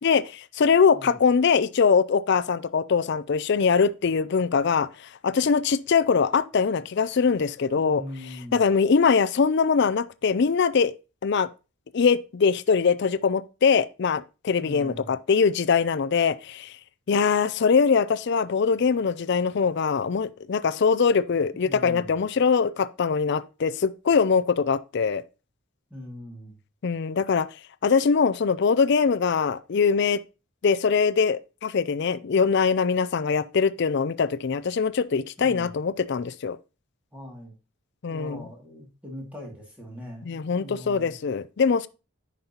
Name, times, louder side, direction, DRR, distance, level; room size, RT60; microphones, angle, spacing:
voice 1, 0.0-8.0 8.5-10.9 11.2-11.5 11.9-16.8 17.1-25.2 26.8-27.5 27.8-30.2 30.6-36.6 38.0-38.4 40.2-41.9, left 5 dB, 50° left, 0.4 m, -22 dB
voice 2, 7.8-8.6 14.6-15.1 21.5-22.1 25.9-26.6 35.4-35.7 37.1-37.5 38.1-41.2, left 1 dB, 5° right, 2.3 m, -41 dB
9.5 x 5.3 x 2.9 m
head